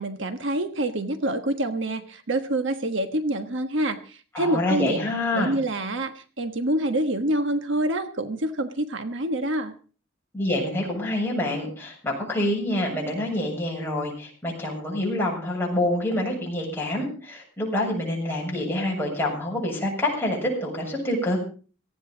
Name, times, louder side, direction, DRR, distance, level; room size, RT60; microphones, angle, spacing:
voice 1, 0.0-5.0 5.3-9.7, right 1 dB, 65° right, 8 dB, 1.3 m, -26 dB
voice 2, 4.3-5.5 10.3-21.4, left 1 dB, 10° left, -2 dB, 7.4 m, -27 dB
18.5 x 15.5 x 3.9 m, 0.38 s
head